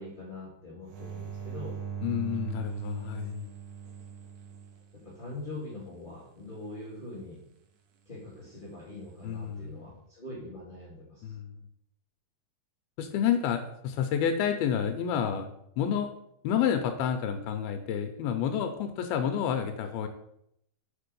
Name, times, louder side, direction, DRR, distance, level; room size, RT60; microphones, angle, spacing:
voice 1, 0.0-1.8 3.1-3.3 4.9-7.4 8.0-11.3, left 2 dB, 20° left, -8 dB, 1.6 m, -43 dB
sound 1, 0.9-5.5 8.8-9.3, right 7 dB, 65° right, 2.3 m, -40 dB
voice 2, 2.0-3.5 9.2-9.8 11.2-11.5 13.0-15.5 15.8-16.1 16.4-20.1, left 8 dB, 85° left, 6 dB, 2.5 m, -29 dB
6.5 x 5.4 x 6.7 m, 0.76 s
omnidirectional pair, 4.4 m